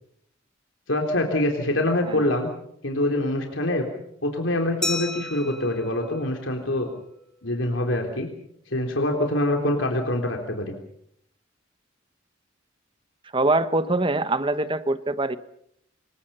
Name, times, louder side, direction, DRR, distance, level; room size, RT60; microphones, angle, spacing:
voice 1, 0.9-2.5 2.8-3.9 4.2-6.9 7.4-8.3 8.7-10.7, left 1 dB, 75° left, 3 dB, 3.6 m, -25 dB
Glass, 4.8-7.3, left 2 dB, 5° left, 2.7 m, -34 dB
voice 2, 13.3-15.4, right 2 dB, 25° right, 11 dB, 1.2 m, -23 dB
26.5 x 23.0 x 5.6 m, 0.72 s
head